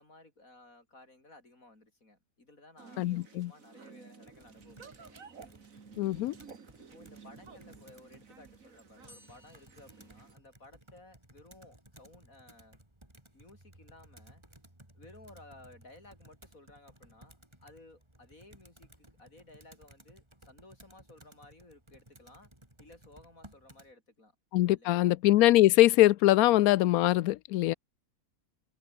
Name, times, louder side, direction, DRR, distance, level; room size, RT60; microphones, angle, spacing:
voice 1, 0.0-5.2 6.8-12.8 13.3-14.4 14.9-22.5 22.8-24.3 24.7-25.2, left 2 dB, 70° left, 6.3 m, -57 dB
sound 1, 2.8-10.4, right 5 dB, 70° right, 2.3 m, -53 dB
voice 2, 3.0-3.5 6.0-6.3 24.5-27.7, left 15 dB, 90° left, 1.0 m, -23 dB
Computer keyboard, 4.2-23.9, right 1 dB, 20° right, 4.3 m, -58 dB
sound 2, 9.1-11.0, left 1 dB, 45° left, 8.0 m, -61 dB
omnidirectional pair, 1.5 m